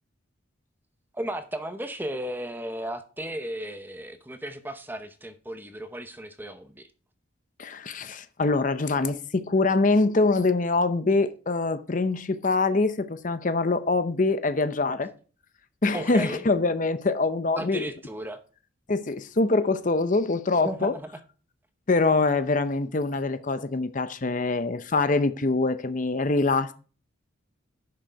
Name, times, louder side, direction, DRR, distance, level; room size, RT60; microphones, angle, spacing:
voice 1, 1.1-6.9 14.9-15.0 15.9-16.4 17.6-18.4 20.6-21.1, right 1 dB, 10° right, 0.8 m, -35 dB
voice 2, 7.6-15.1 15.8-17.8 18.9-20.9 21.9-26.7, left 3 dB, 40° left, 0.6 m, -24 dB
11.0 x 6.3 x 4.6 m
head